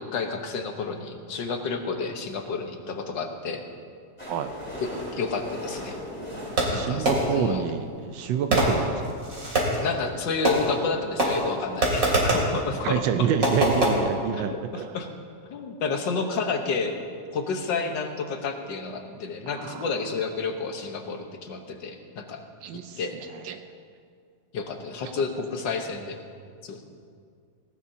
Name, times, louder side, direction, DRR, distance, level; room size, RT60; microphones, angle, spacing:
voice 1, 0.0-3.6 4.8-6.0 6.7-7.6 9.8-13.3 14.3-15.1 15.5-16.9 17.3-22.4 23.0-23.2 24.5-26.2 26.7-26.8, left 4 dB, 75° left, 4 dB, 1.8 m, -30 dB
sound 1, 4.2-8.0 8.7-8.8 9.0-9.1 9.3-9.4 9.7-9.8, left 1 dB, 5° left, 3.6 m, -38 dB
Fireworks, 6.6-7.5 8.5-9.9 10.4-10.9 11.2-12.6 13.4-13.9, right 1 dB, 45° right, 3.4 m, -24 dB
voice 2, 6.7-9.1 12.8-15.0 19.5-19.8 22.6-23.0 23.4-23.6, right 8 dB, 85° right, 8 dB, 1.4 m, -28 dB
18.5 x 18.0 x 2.8 m, 2.2 s
omnidirectional pair, 2.0 m